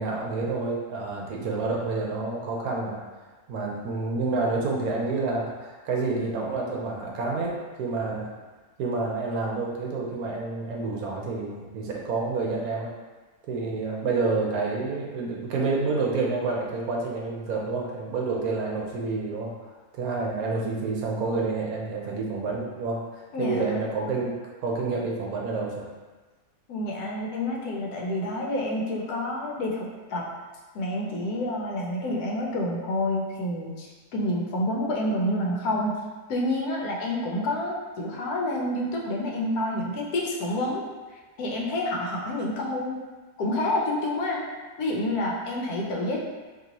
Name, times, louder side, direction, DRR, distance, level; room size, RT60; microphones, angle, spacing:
voice 1, 0.0-3.0 3.5-8.3 8.8-12.9 13.5-19.6 19.9-25.9, right 3 dB, 70° right, -2 dB, 1.1 m, -29 dB
voice 2, 23.3-23.8 26.7-30.3 30.7-35.9 36.3-40.8 41.4-43.0 43.4-44.5 44.8-46.2, left 1 dB, 75° left, -2 dB, 1.2 m, -28 dB
3.9 x 2.9 x 2.9 m, 1.3 s
omnidirectional pair, 1.7 m